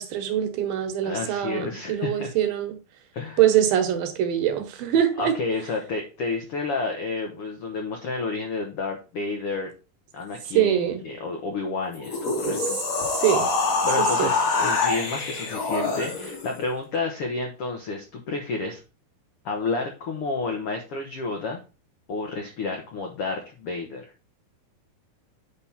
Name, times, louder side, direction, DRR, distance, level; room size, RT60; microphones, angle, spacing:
voice 1, 0.0-2.8 3.4-5.3 10.5-11.0 12.4-12.6 13.1-13.5 14.0-14.3, right 10 dB, 75° right, 2.8 m, -23 dB
voice 2, 1.0-2.3 3.1-3.4 5.2-9.7 10.1-10.8 11.0-12.8 13.8-18.8 19.4-21.6 22.1-24.1, left 3 dB, 75° left, 1.3 m, -30 dB
sound 1, 11.9-16.5, left 3 dB, 50° left, 2.7 m, -25 dB
9.1 x 3.5 x 5.7 m
omnidirectional pair, 4.3 m